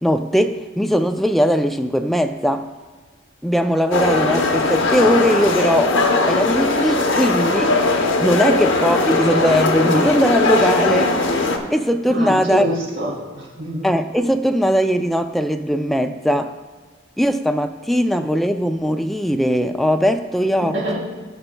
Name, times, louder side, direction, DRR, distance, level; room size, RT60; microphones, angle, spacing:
voice 1, 0.0-2.7 3.4-6.0 6.3-11.1 11.7-12.7 13.8-16.5 17.2-21.0, equal, ahead, 6 dB, 0.3 m, -19 dB
sound 1, 3.9-11.6, left 2 dB, 60° left, 0.9 m, -19 dB
voice 2, 12.1-13.9 20.6-21.0, equal, 65° right, -4 dB, 2.7 m, -26 dB
17.5 x 5.9 x 2.2 m, 1.4 s
head